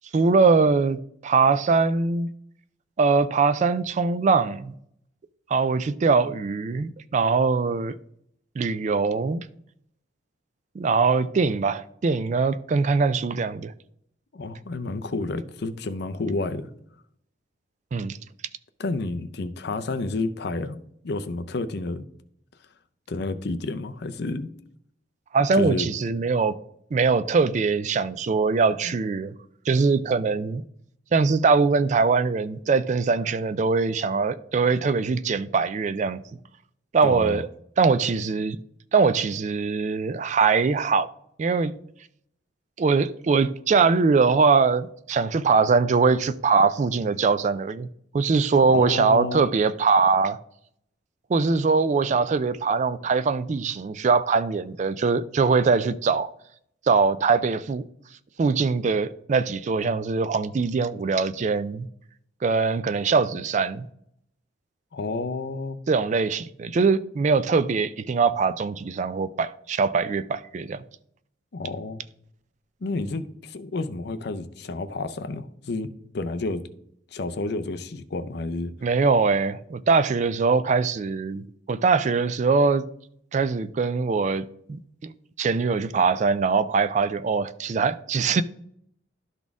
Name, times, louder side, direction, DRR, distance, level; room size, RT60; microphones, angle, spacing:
voice 1, 0.1-2.3 3.0-4.7 5.5-8.0 8.6-9.5 10.8-13.7 17.9-18.2 25.3-26.6 26.9-29.3 29.7-30.6 31.1-36.2 36.9-37.5 37.8-38.6 38.9-41.1 41.4-41.7 42.8-47.9 48.1-50.4 51.3-56.3 56.9-57.8 58.4-61.9 62.4-63.9 65.9-70.8 78.8-82.9 83.3-85.1 85.4-88.4, right 4 dB, 35° right, 0.3 m, -22 dB
voice 2, 14.3-16.7 18.8-20.8 21.0-22.0 23.1-24.5 25.5-25.9 37.0-37.4 48.7-49.5 64.9-65.8 71.5-72.0 72.8-75.9 76.1-76.6 77.1-78.7, left 3 dB, 55° left, 0.5 m, -30 dB
12.0 x 4.1 x 3.5 m
head